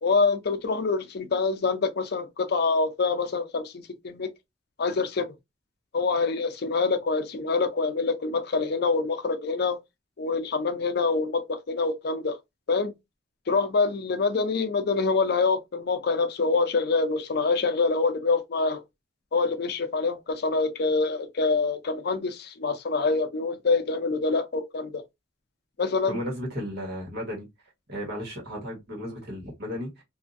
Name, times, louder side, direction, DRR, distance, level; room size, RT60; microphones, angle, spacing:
voice 1, 0.0-4.3 4.8-5.3 5.9-9.8 10.2-12.4 12.7-12.9 13.5-18.8 19.3-24.9 25.8-26.2, left 4 dB, 60° left, 0.5 m, -25 dB
voice 2, 26.1-27.5 27.9-30.0, equal, 60° right, 1.4 m, -34 dB
2.7 x 2.5 x 2.5 m
head